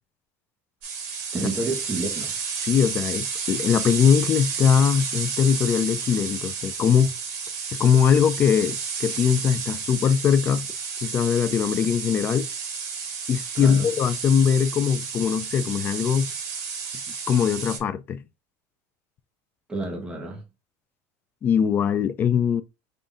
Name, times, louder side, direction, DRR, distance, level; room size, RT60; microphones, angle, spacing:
sound 1, 0.8-17.8, right 6 dB, 70° right, 2.4 m, -31 dB
voice 1, 1.3-2.3 13.5-13.9 19.7-20.4, right 3 dB, 10° right, 1.1 m, -30 dB
voice 2, 2.7-7.1 7.8-10.7 11.0-12.5 13.3-16.3 17.3-18.2 21.4-22.6, left 7 dB, 25° left, 0.3 m, -21 dB
5.4 x 2.6 x 3.6 m
cardioid pair, 165°, 8 cm